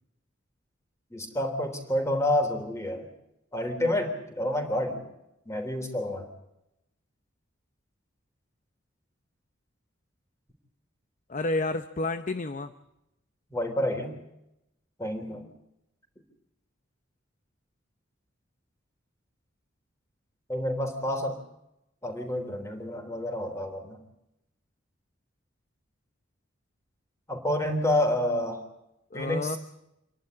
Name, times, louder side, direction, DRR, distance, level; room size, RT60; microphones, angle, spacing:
voice 1, 1.1-3.1 3.5-5.0 5.5-6.3 13.5-14.2 15.0-15.5 20.5-21.4 22.0-24.0 27.3-28.6 29.1-29.6, left 1 dB, 15° left, 4 dB, 3.6 m, -29 dB
voice 2, 11.3-12.7 29.1-29.6, left 2 dB, 40° left, 10 dB, 0.7 m, -30 dB
28.0 x 11.5 x 9.6 m, 0.87 s
head